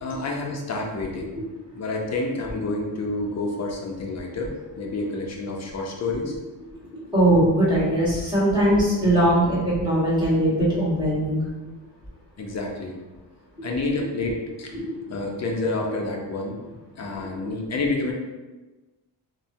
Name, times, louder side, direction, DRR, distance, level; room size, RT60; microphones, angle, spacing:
voice 1, 0.0-1.3 1.8-6.4 12.4-13.0 13.6-14.7 15.1-16.6 17.0-18.1, left 2 dB, 40° left, 0 dB, 0.5 m, -29 dB
voice 2, 7.1-11.4 14.7-14.9 17.4-17.6, right 1 dB, 10° right, -9 dB, 1.4 m, -20 dB
3.1 x 2.2 x 2.6 m, 1.2 s
cardioid pair, 110°, 43 cm